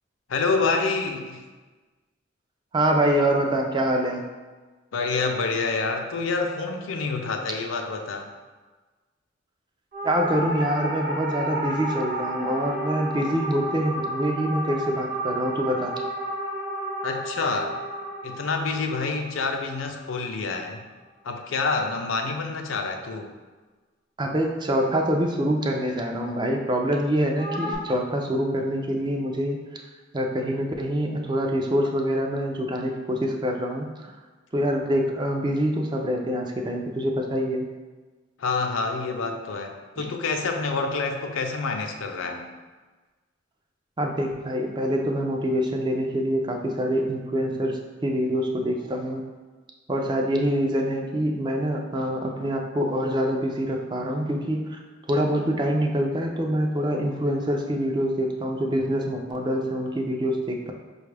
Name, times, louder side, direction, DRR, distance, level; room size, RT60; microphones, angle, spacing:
voice 1, 0.3-1.4 4.9-8.3 17.0-17.8 18.2-20.8 21.2-23.3 38.4-42.5, left 4 dB, 90° left, 4 dB, 0.5 m, -27 dB
voice 2, 2.7-4.2 10.0-15.9 24.2-29.8 30.1-34.1 34.5-37.7 40.0-40.1 44.0-49.2 49.9-54.8 55.1-60.7, equal, 25° right, 2 dB, 0.4 m, -25 dB
sound 1, 9.9-20.4 27.4-27.7, right 1 dB, 50° right, 0.7 m, -32 dB
5.1 x 2.4 x 3.3 m, 1.3 s
head